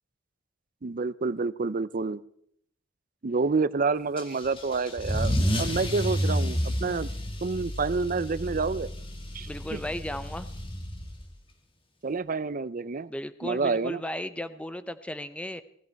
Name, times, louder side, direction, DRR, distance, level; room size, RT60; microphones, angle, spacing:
voice 1, 0.8-2.2 3.2-7.1 7.4-8.9 9.3-9.8 12.0-13.1 13.4-14.0, right 4 dB, 45° right, 16 dB, 0.6 m, -28 dB
Car / Engine starting / Accelerating revving vroom, 4.2-11.3, equal, 30° left, 2.0 m, -30 dB
voice 2, 9.5-10.5 13.1-15.6, left 1 dB, 5° left, 12 dB, 0.7 m, -35 dB
19.0 x 13.5 x 4.6 m, 0.69 s
head